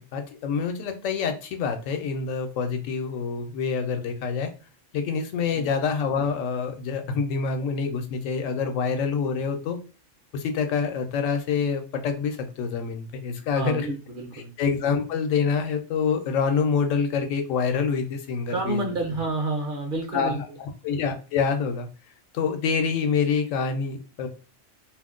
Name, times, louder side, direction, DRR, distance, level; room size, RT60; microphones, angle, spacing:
voice 1, 0.0-4.5 4.9-9.8 10.3-13.9 14.3-19.0 20.1-21.9 22.3-24.3, left 5 dB, 85° left, 6 dB, 1.0 m, -26 dB
voice 2, 13.5-14.5 18.5-20.6, right 2 dB, 50° right, 1 dB, 0.7 m, -29 dB
2.5 x 2.1 x 3.6 m, 0.34 s
omnidirectional pair, 1.3 m